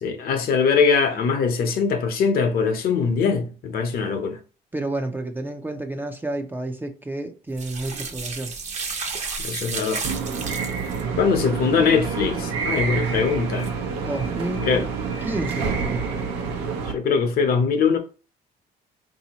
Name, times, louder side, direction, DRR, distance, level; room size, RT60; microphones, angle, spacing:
voice 1, 0.0-4.4 9.4-10.0 11.2-13.7 14.6-14.8 16.9-18.0, left 5 dB, 60° left, 0.8 m, -22 dB
voice 2, 4.7-8.5 14.0-14.9 15.2-16.1, right 2 dB, 10° right, 0.4 m, -30 dB
sound 1, 7.5-11.0 13.6-13.7, right 4 dB, 45° right, 0.8 m, -32 dB
sound 2, 10.0-16.9, right 5 dB, 90° right, 0.8 m, -28 dB
3.8 x 2.8 x 2.9 m
cardioid pair, 110°, 17 cm